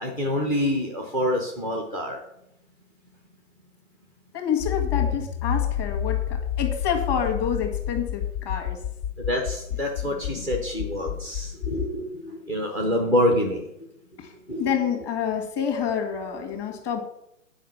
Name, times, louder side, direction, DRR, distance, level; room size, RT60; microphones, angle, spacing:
voice 1, 0.0-2.2 9.3-13.6 14.5-14.7, equal, 5° left, 2 dB, 0.5 m, -26 dB
voice 2, 4.3-8.8 10.0-10.5 14.2-14.3 14.6-17.0, left 8 dB, 25° left, 3 dB, 1.9 m, -28 dB
Accelerating revving vroom, 4.6-11.9, left 9 dB, 55° left, 2.3 m, -29 dB
9.4 x 5.3 x 7.2 m, 0.79 s
figure-of-eight pair, 130°, 41 cm